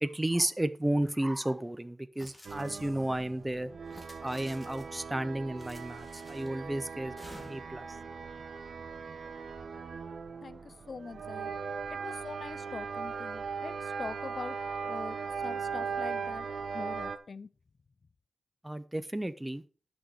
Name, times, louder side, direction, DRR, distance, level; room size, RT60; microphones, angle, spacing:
voice 1, 0.0-3.7 4.2-7.1 7.5-7.9 18.6-19.6, right 1 dB, 10° right, 0.5 m, -32 dB
sound 1, 2.2-3.2 3.8-5.0 5.6-6.6 7.2-7.8, left 1 dB, 10° left, 2.4 m, -52 dB
sound 2, 2.4-17.2, right 5 dB, 60° right, 0.9 m, -39 dB
voice 2, 10.4-11.5 11.9-16.5 16.7-17.5, left 4 dB, 45° left, 0.5 m, -43 dB
11.0 x 6.4 x 4.6 m
wide cardioid pair, 135°, 0 cm